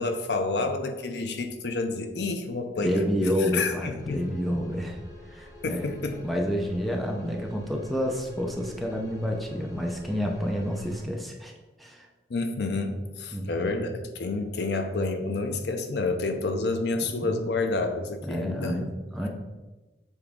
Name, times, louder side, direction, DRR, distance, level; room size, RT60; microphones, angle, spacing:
voice 1, 0.0-3.0 3.5-4.3 5.6-6.2 12.3-18.9, left 3 dB, 65° left, 7 dB, 0.6 m, -29 dB
voice 2, 2.8-5.0 5.3-5.9 6.2-11.5 11.8-12.1 13.3-13.8 17.0-17.4 18.2-19.3, equal, ahead, 0 dB, 0.6 m, -29 dB
sound 1, 4.0-11.0, left 1 dB, 20° left, 1.1 m, -47 dB
7.2 x 4.0 x 3.6 m, 1.2 s
head